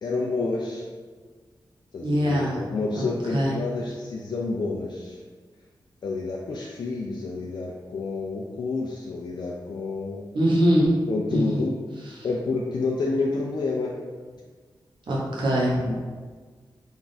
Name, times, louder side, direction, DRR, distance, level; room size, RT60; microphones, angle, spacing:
voice 1, 0.0-0.9 1.9-5.2 6.0-10.2 11.1-11.7 12.2-13.9 15.9-16.1, left 3 dB, 65° left, -3 dB, 0.4 m, -29 dB
voice 2, 2.0-2.6 2.9-3.0 3.3-3.5 10.3-10.9 11.3-11.6 12.1-12.3 15.1-15.9, equal, 85° right, -4 dB, 0.9 m, -22 dB
3.5 x 2.4 x 4.0 m, 1.5 s
wide cardioid pair, 105°, 8 cm